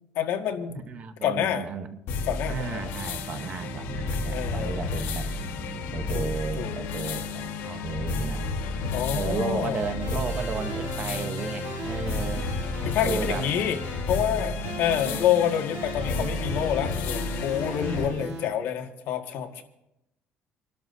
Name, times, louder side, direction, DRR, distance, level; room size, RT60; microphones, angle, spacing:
voice 1, 0.2-0.9 1.2-1.7 2.3-2.8 4.3-4.8 6.1-6.3 6.6-6.8 8.9-9.9 12.9-13.8 14.1-19.6, left 9 dB, 70° left, 1.8 m, -27 dB
voice 2, 0.7-2.0 2.5-5.3 5.9-8.5 9.1-12.5 13.0-13.5 14.7-14.8 17.6-18.3, right 5 dB, 35° right, 0.9 m, -34 dB
sound 1, 2.1-18.1, left 3 dB, 85° left, 1.5 m, -32 dB
sound 2, 2.5-14.5, right 3 dB, 20° right, 6.4 m, -45 dB
sound 3, 9.7-18.5, right 2 dB, 85° right, 3.1 m, -38 dB
28.5 x 12.5 x 2.7 m
cardioid pair, 160°, 4 cm